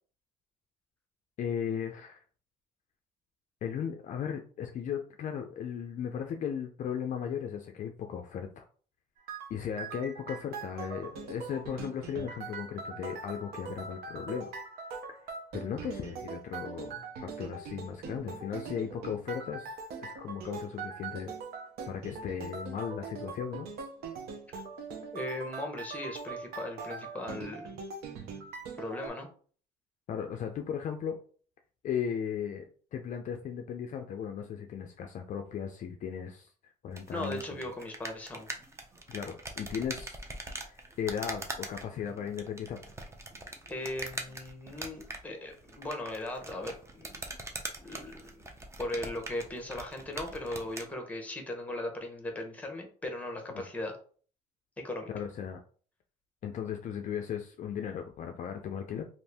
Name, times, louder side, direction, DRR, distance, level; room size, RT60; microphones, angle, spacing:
voice 1, 1.4-2.2 3.6-8.6 9.5-14.5 15.1-19.7 20.0-21.3 21.9-23.7 30.1-31.2 31.8-32.6 32.9-36.5 36.8-37.4 39.1-40.2 40.6-42.8 53.5-53.6 55.1-55.6 56.4-59.0, left 8 dB, 45° left, 4 dB, 0.4 m, -36 dB
sound 1, 9.3-29.1, right 5 dB, 70° right, 0.7 m, -42 dB
voice 2, 25.1-27.8 28.8-29.3 37.1-38.5 43.7-47.2 47.8-48.4 48.8-54.0 54.8-55.1, left 1 dB, 10° left, 4 dB, 0.9 m, -38 dB
sound 2, 36.9-50.9, right 2 dB, 15° right, 0.5 m, -43 dB
2.6 x 2.5 x 3.4 m, 0.43 s
cardioid pair, 110°, 17 cm